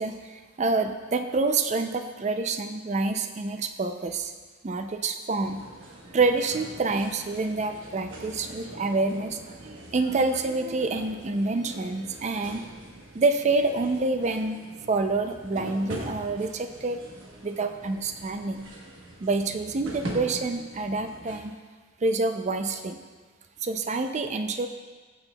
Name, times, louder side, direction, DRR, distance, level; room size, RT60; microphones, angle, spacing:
voice 1, 0.0-4.3 4.6-5.6 6.1-12.6 13.1-14.6 14.9-17.0 17.4-18.7 19.2-21.5 22.0-23.0 23.6-24.7, right 3 dB, 35° right, 7 dB, 0.4 m, -27 dB
sound 1, 5.4-21.4, right 1 dB, 85° right, 1.1 m, -42 dB
15.0 x 5.6 x 2.3 m, 1.5 s
head